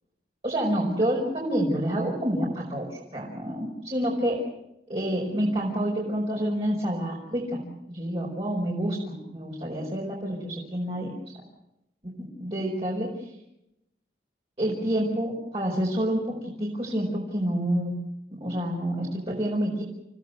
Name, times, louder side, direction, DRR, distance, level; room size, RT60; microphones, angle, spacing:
voice 1, 0.4-4.4 4.9-7.6 7.9-11.1 12.2-13.3 14.6-17.9 18.3-19.8, right 1 dB, 35° right, -3 dB, 5.1 m, -28 dB
30.0 x 16.5 x 8.0 m, 0.87 s
head